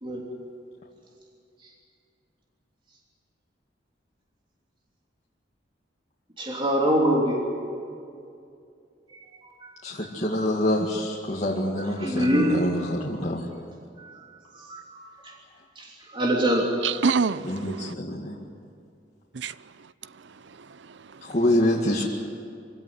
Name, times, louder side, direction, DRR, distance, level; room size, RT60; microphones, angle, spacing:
voice 1, 6.4-7.4 9.6-9.7 10.4-10.5 11.7-12.9 14.0-14.1 14.6-15.1 15.8-15.9 16.1-16.7, right 1 dB, 30° right, 3.1 m, -24 dB
voice 2, 9.8-13.5 17.4-18.4 21.2-22.0, left 1 dB, 40° left, 2.2 m, -26 dB
voice 3, 16.8-17.9 19.3-19.5 20.5-21.2, right 5 dB, 80° right, 0.6 m, -27 dB
25.5 x 16.5 x 9.7 m
head